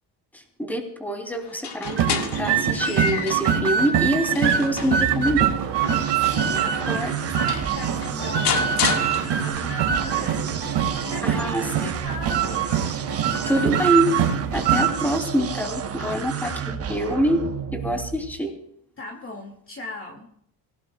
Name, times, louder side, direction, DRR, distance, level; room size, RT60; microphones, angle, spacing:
voice 1, 0.3-5.5 6.9-7.1 11.2-11.9 13.5-14.2 14.5-16.5 16.9-18.5, equal, 5° left, 2 dB, 3.2 m, -25 dB
sound 1, 1.5-3.6 4.1-6.6 7.2-7.3 7.5-9.7, left 7 dB, 70° left, 1.9 m, -30 dB
sound 2, 1.8-15.2, right 8 dB, 90° right, 2.1 m, -24 dB
sound 3, 4.7-18.4, right 8 dB, 35° right, 0.9 m, -32 dB
voice 2, 5.9-11.4 11.8-12.7 16.0-17.0 19.0-20.3, left 2 dB, 30° left, 2 dB, 2.3 m, -38 dB
24.5 x 17.5 x 2.3 m, 0.70 s
cardioid pair, 155°, 41 cm